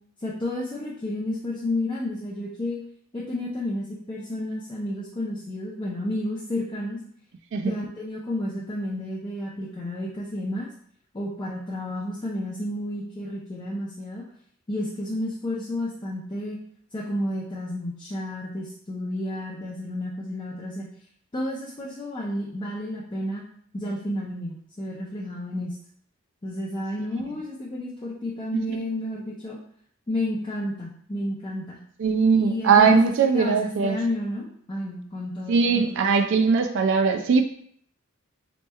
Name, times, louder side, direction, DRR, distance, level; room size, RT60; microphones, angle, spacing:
voice 1, 0.2-2.8 3.1-7.0 7.6-10.7 11.1-14.2 14.7-16.6 16.9-20.9 21.3-23.4 23.7-25.8 26.4-29.6 30.1-31.8 32.3-35.8, left 1 dB, 25° left, -6 dB, 0.5 m, -31 dB
voice 2, 32.0-34.0 35.5-37.4, right 5 dB, 60° right, 5 dB, 0.4 m, -20 dB
4.2 x 3.0 x 2.3 m, 0.63 s
head